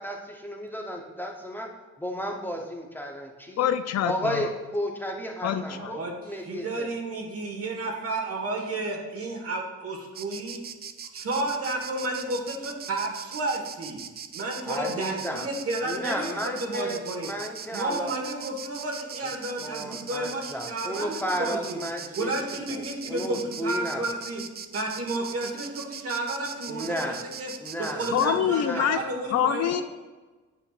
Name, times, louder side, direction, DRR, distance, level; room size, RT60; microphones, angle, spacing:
voice 1, 0.0-1.7 2.0-3.7 4.0-6.9 14.6-15.5 15.8-18.1 19.2-19.3 19.6-24.2 26.7-27.2 27.6-29.1, equal, 5° left, 1 dB, 0.8 m, -33 dB
voice 2, 3.6-4.5 5.4-5.9 28.0-29.0 29.3-29.8, left 9 dB, 60° left, 10 dB, 0.4 m, -25 dB
voice 3, 5.7-6.1 6.4-10.6 11.1-14.0 14.3-17.3 17.7-21.8 22.2-24.4 24.7-27.0 27.4-27.5 27.8-29.8, right 2 dB, 50° right, 1 dB, 1.5 m, -31 dB
Insect, 10.1-28.3, right 7 dB, 35° right, 0.4 m, -40 dB
9.2 x 5.4 x 2.4 m, 1.2 s
cardioid pair, 90°, 30 cm